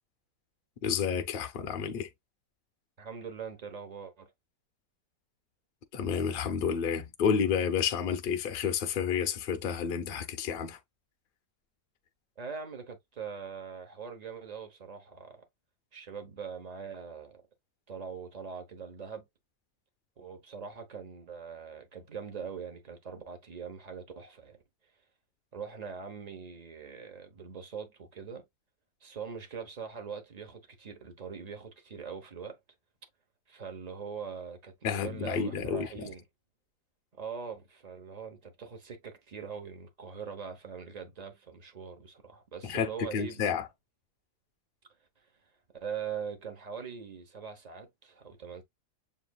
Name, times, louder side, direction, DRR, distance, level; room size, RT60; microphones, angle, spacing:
voice 1, 0.8-2.1 5.9-10.8 34.8-36.1 42.6-43.7, left 7 dB, 50° left, 0.7 m, -30 dB
voice 2, 3.0-4.3 12.4-15.4 15.9-17.4 17.9-19.3 20.2-24.6 25.5-28.5 29.0-32.6 33.5-36.2 37.2-43.4 45.8-48.6, right 6 dB, 35° right, 0.7 m, -42 dB
7.3 x 2.6 x 2.3 m
omnidirectional pair, 1.8 m